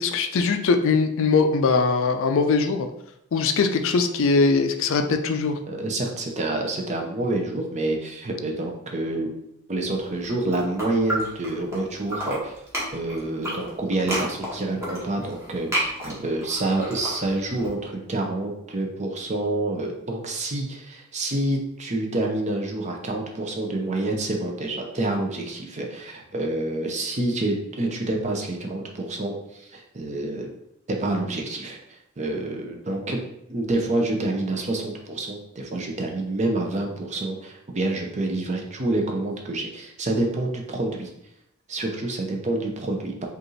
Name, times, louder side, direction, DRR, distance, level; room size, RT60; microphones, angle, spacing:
voice 1, 0.0-2.9 3.3-5.6, left 4 dB, 60° left, 7 dB, 0.4 m, -21 dB
voice 2, 5.7-9.3 9.7-12.5 12.9-30.5 30.9-31.8 32.2-33.2 33.5-41.1 41.7-43.3, right 2 dB, 30° right, 2 dB, 0.6 m, -27 dB
sound 1, 10.1-11.8 12.0-17.7, right 1 dB, 15° right, 1.2 m, -31 dB
5.0 x 2.5 x 3.1 m, 0.80 s
head